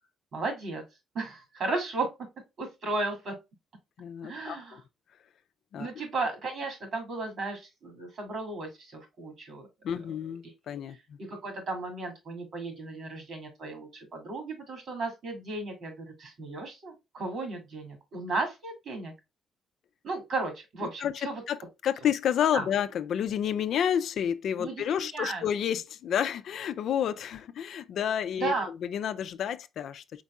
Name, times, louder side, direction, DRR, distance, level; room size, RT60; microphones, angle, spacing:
voice 1, 0.3-0.8 1.1-2.1 2.6-3.3 4.2-4.8 5.8-9.7 11.2-19.1 20.0-21.4 22.5-22.7 24.6-25.4 28.4-28.7, right 3 dB, 60° right, 2.4 m, -34 dB
voice 2, 4.0-4.8 5.7-5.9 9.8-11.0 21.0-30.2, left 9 dB, 70° left, 0.4 m, -30 dB
4.5 x 4.1 x 2.3 m
cardioid pair, 90°, 0 cm